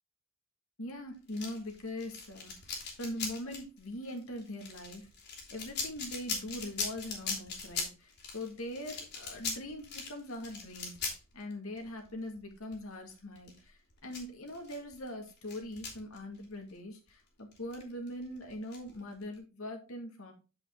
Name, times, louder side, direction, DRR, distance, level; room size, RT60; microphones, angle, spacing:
voice 1, 0.8-5.1 5.5-11.0 11.3-20.3, left 1 dB, 75° left, 2 dB, 2.2 m, -42 dB
sound 1, 1.3-16.7 16.9-17.1 17.5-19.4, left 4 dB, 55° left, 3.0 m, -41 dB
8.5 x 5.6 x 3.8 m, 0.33 s
head